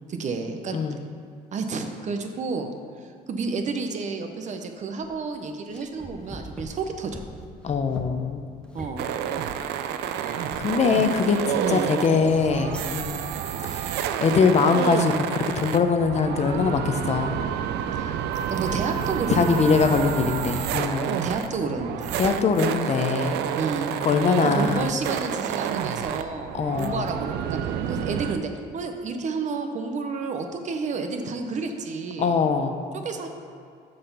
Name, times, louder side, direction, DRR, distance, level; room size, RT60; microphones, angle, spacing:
voice 1, 0.1-0.8 1.5-2.7 3.3-7.2 8.7-9.0 11.6-11.9 18.0-18.1 18.5-19.6 21.0-22.1 23.5-23.9 24.5-32.3 32.9-33.3, right 4 dB, 45° right, 5 dB, 0.8 m, -30 dB
sound 1, 5.0-5.3 5.7-11.1 11.6-13.2, equal, 5° left, 0.8 m, -44 dB
voice 2, 7.6-8.4 10.6-13.2 13.7-13.9 14.2-17.4 19.3-21.2 22.2-23.4 24.0-24.9 26.5-27.0 32.2-32.8, left 5 dB, 40° left, 6 dB, 0.7 m, -22 dB
sound 2, 9.0-28.4, right 9 dB, 80° right, 0.5 m, -29 dB
6.7 x 5.7 x 5.5 m, 2.3 s
cardioid pair, 110°, 17 cm